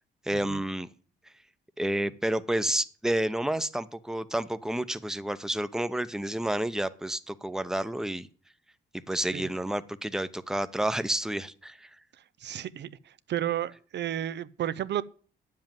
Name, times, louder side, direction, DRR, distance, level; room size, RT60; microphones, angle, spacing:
voice 1, 0.3-0.9 1.8-8.3 9.1-11.9, right 1 dB, 5° right, 0.8 m, -30 dB
voice 2, 12.4-15.0, right 11 dB, 60° right, 0.6 m, -32 dB
9.2 x 7.5 x 9.1 m
cardioid pair, 90°, 20 cm